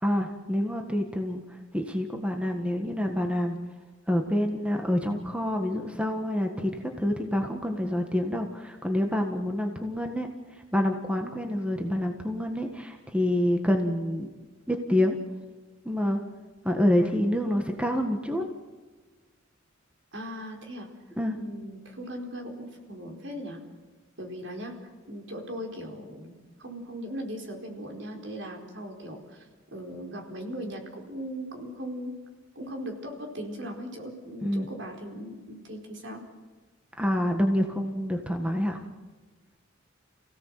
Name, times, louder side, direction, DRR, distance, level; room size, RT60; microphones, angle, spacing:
voice 1, 0.0-3.6 4.1-14.3 14.7-15.2 15.8-16.2 16.6-18.4 21.2-21.4 34.4-34.7 37.0-38.8, left 1 dB, 5° right, 4 dB, 1.6 m, -27 dB
voice 2, 20.1-20.9 21.4-23.6 24.2-24.7 25.1-29.4 29.7-32.1 32.5-36.2, equal, 60° right, 2 dB, 4.5 m, -38 dB
29.0 x 17.0 x 7.7 m, 1.3 s
head